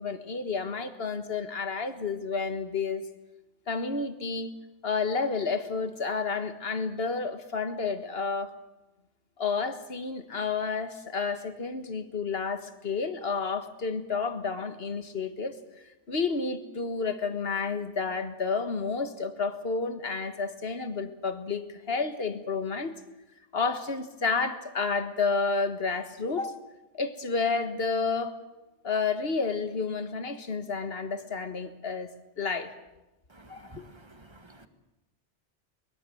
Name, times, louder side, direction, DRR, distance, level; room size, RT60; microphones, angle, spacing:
voice 1, 0.0-3.0 3.7-4.5 4.8-8.5 9.4-15.6 16.1-23.0 23.5-26.6 26.9-28.3 28.8-32.1 32.4-32.7 33.5-33.8, left 4 dB, 60° left, 9 dB, 1.8 m, -30 dB
voice 2, 33.3-34.7, right 2 dB, 25° right, 8 dB, 1.7 m, -51 dB
23.0 x 21.0 x 7.8 m, 0.99 s
omnidirectional pair, 1.2 m